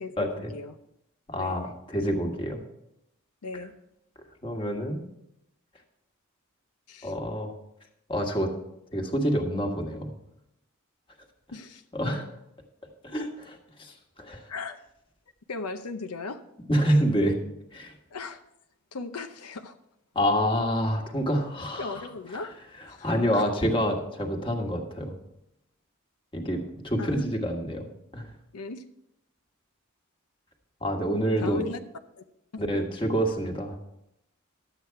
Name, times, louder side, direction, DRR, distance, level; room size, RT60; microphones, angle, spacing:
voice 1, 0.0-0.8 1.3-1.6 3.4-3.7 6.9-7.1 11.5-11.8 13.1-13.2 14.5-14.8 15.5-16.4 18.1-18.4 18.9-19.8 21.8-22.5 22.9-23.5 27.0-27.2 28.5-28.8 31.4-31.8 32.2-32.3 32.5-32.6, left 3 dB, 90° left, 7 dB, 0.7 m, -37 dB
voice 2, 1.3-2.6 4.4-5.0 7.0-7.5 8.1-8.5 8.9-10.1 11.9-12.3 13.0-14.5 16.7-17.4 17.7-17.9 20.1-22.0 23.0-25.2 26.3-27.9 28.1-28.3 30.8-31.6 32.6-33.8, equal, 25° left, 2 dB, 1.5 m, -27 dB
12.0 x 8.2 x 4.6 m, 0.82 s
head